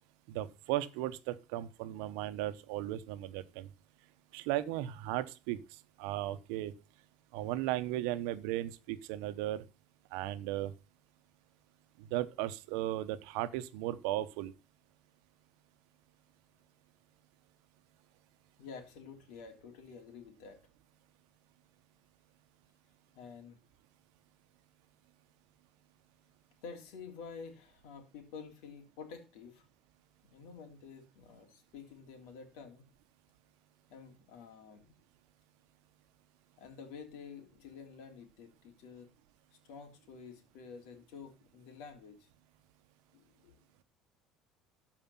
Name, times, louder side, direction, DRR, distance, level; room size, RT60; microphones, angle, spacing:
voice 1, 0.3-3.7 4.3-5.6 6.0-6.7 7.3-9.6 10.1-10.7 12.0-14.5, right 14 dB, 85° right, 0.9 m, -36 dB
voice 2, 18.6-20.6 23.1-23.6 26.6-29.6 30.3-32.8 33.9-34.9 36.6-39.1 39.6-42.3 43.1-43.6, left 5 dB, 75° left, 2.9 m, -50 dB
13.0 x 4.9 x 5.5 m
cardioid pair, 155°, 0 cm